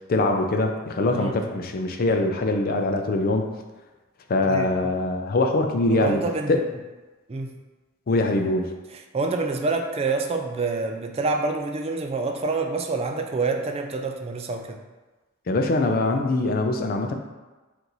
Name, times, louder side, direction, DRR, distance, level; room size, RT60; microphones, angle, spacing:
voice 1, 0.0-3.5 4.3-6.2 6.5-6.6 8.1-8.7 15.5-17.1, left 2 dB, 45° left, 5 dB, 0.4 m, -23 dB
voice 2, 1.1-1.5 4.5-4.9 5.9-6.6 7.3-7.5 9.1-14.8, right 3 dB, 30° right, 4 dB, 0.3 m, -27 dB
4.4 x 2.6 x 4.0 m, 1.2 s
head